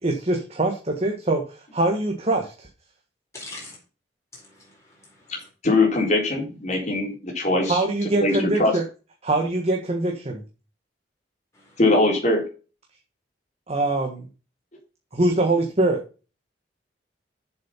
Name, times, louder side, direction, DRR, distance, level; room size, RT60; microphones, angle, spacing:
voice 1, 0.0-2.7 7.7-8.8 9.2-10.4 13.7-14.3 15.1-16.0, right 2 dB, 35° right, 2 dB, 1.6 m, -23 dB
voice 2, 3.3-3.8 4.3-5.5 11.5-11.8, left 2 dB, 15° left, -3 dB, 4.1 m, -43 dB
voice 3, 5.6-7.8 8.2-8.7 11.8-12.4, left 2 dB, 40° left, 0 dB, 3.7 m, -21 dB
7.6 x 7.2 x 5.7 m, 0.34 s
head